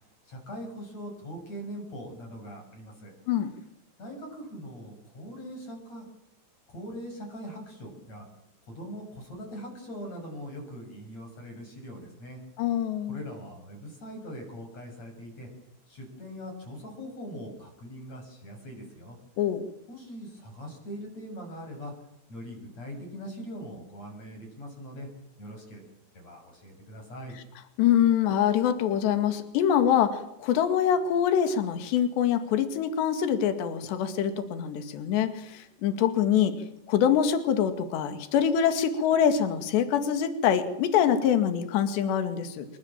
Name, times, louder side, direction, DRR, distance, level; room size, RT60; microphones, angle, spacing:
voice 1, 0.2-3.1 4.0-6.1 6.7-8.3 8.6-12.4 13.1-15.5 15.9-19.2 19.9-21.9 22.3-25.1 25.4-25.8 26.1-27.4, equal, 35° left, 2 dB, 7.9 m, -41 dB
voice 2, 12.6-13.2 19.4-19.7 27.8-36.6 36.9-42.7, left 9 dB, 70° left, 8 dB, 4.2 m, -24 dB
28.0 x 24.0 x 7.5 m, 0.75 s
omnidirectional pair, 5.3 m